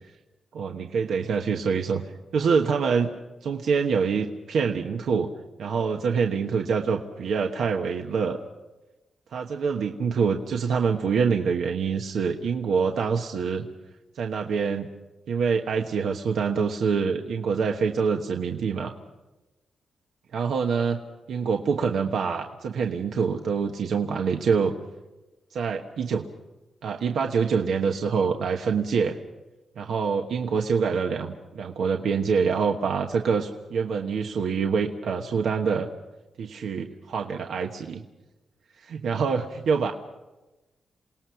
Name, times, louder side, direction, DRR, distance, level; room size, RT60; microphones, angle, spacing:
voice 1, 0.5-2.0 2.3-3.1 3.4-5.3 5.6-8.4 9.3-13.7 14.1-14.9 15.3-18.9 20.3-21.0 21.3-24.7 25.5-26.2 26.8-29.2 29.8-35.9 36.4-38.0 38.8-39.9, right 5 dB, 80° right, 2 dB, 1.2 m, -25 dB
28.0 x 18.5 x 5.8 m, 1.1 s
cardioid pair, 80°, 0 cm